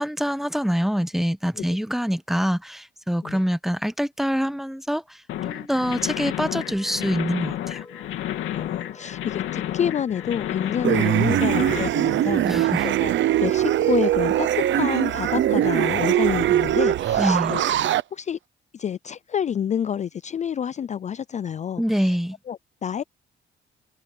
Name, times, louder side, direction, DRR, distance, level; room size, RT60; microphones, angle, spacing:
voice 1, 0.0-7.8 12.4-12.9 17.2-17.6 21.8-22.4, equal, ahead, 1.1 m, -25 dB
sound 1, 5.3-11.9, left 12 dB, 90° left, 2.9 m, -31 dB
sound 2, 6.2-17.3, left 3 dB, 20° left, 3.4 m, -47 dB
voice 2, 8.5-13.1 13.4-17.6 18.1-18.4 18.7-21.8 22.5-23.0, left 8 dB, 35° left, 0.4 m, -28 dB
sound 3, 10.8-18.0, right 12 dB, 70° right, 0.9 m, -21 dB
cardioid pair, 90°, 20 cm